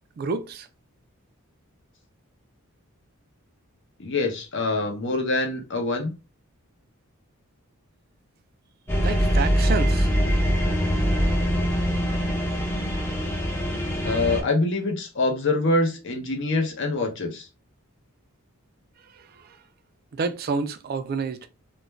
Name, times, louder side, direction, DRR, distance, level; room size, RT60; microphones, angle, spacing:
voice 1, 0.2-0.7 9.0-10.1 19.1-19.6 20.1-21.5, right 4 dB, 45° right, 0.3 m, -29 dB
voice 2, 4.0-6.1 14.0-17.5, left 2 dB, 55° left, 0.7 m, -25 dB
sound 1, 8.9-14.4, equal, 10° left, 0.5 m, -23 dB
2.4 x 2.1 x 3.1 m
head